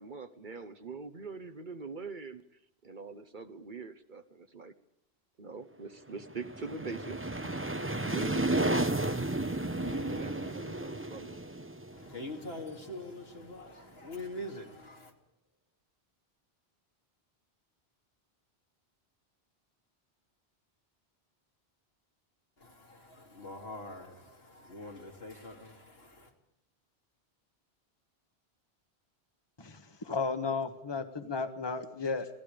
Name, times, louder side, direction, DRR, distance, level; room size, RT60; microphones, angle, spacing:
voice 1, 0.0-2.4 2.8-4.7 5.4-7.6 8.0-8.9 10.1-11.4, right 4 dB, 50° right, 10 dB, 1.2 m, -43 dB
sound 1, 6.2-12.9, right 2 dB, 15° right, 0.9 m, -33 dB
voice 2, 9.6-10.5 11.9-15.1 22.6-26.3, left 2 dB, 70° left, 2 dB, 3.4 m, -44 dB
voice 3, 29.6-32.3, left 4 dB, 25° left, 8 dB, 1.4 m, -34 dB
28.5 x 17.5 x 5.1 m, 0.78 s
omnidirectional pair, 1.1 m